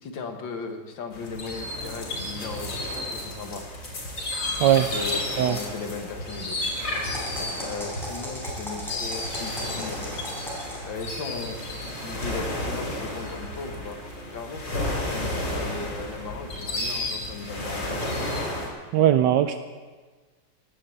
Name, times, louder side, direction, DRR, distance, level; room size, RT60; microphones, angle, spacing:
voice 1, 0.0-3.6 4.9-6.6 7.6-10.0 10.8-14.0 14.3-14.6 15.0-18.3, left 4 dB, 90° left, 4 dB, 2.3 m, -37 dB
sound 1, 1.1-18.7, left 1 dB, 75° left, 3.9 m, -32 dB
voice 2, 4.6-4.9 5.4-5.6 18.9-19.6, right 11 dB, 75° right, 9 dB, 1.2 m, -19 dB
sound 2, 6.9-10.9, equal, ahead, 4.9 m, -37 dB
19.0 x 7.0 x 7.8 m, 1.4 s
omnidirectional pair, 2.0 m